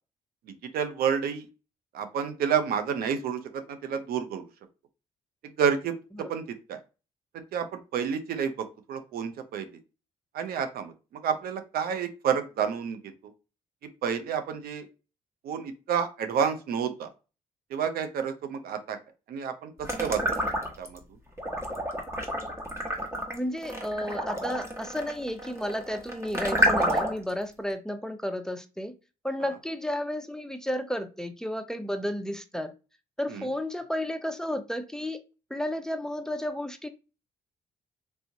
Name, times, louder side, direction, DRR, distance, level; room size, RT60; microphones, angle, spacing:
voice 1, 0.7-1.5 1.9-4.4 5.6-5.9 6.3-6.4 6.7-6.8 7.5-9.7 10.3-13.0 14.0-14.9 15.4-17.1 17.7-19.0 19.3-20.2 20.8-21.0 33.3-33.5, right 7 dB, 75° right, 0.6 m, -29 dB
sound 1, 19.8-21.0 21.4-27.3, equal, 15° right, 1.2 m, -29 dB
voice 2, 23.3-28.9 29.2-32.7 33.2-35.2 35.5-36.9, left 1 dB, 5° left, 0.6 m, -32 dB
3.3 x 3.0 x 2.7 m
supercardioid pair, 60°, 16 cm